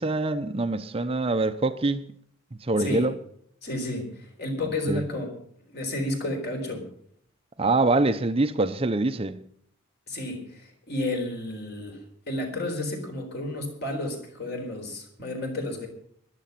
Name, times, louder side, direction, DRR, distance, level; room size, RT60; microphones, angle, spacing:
voice 1, 0.0-2.0 2.6-3.1 4.9-5.0 7.6-9.4, right 2 dB, 25° right, 0.6 m, -24 dB
voice 2, 2.8-3.1 3.6-5.4 5.7-6.9 10.1-15.9, left 1 dB, 50° left, 4.0 m, -31 dB
14.0 x 11.5 x 5.8 m
head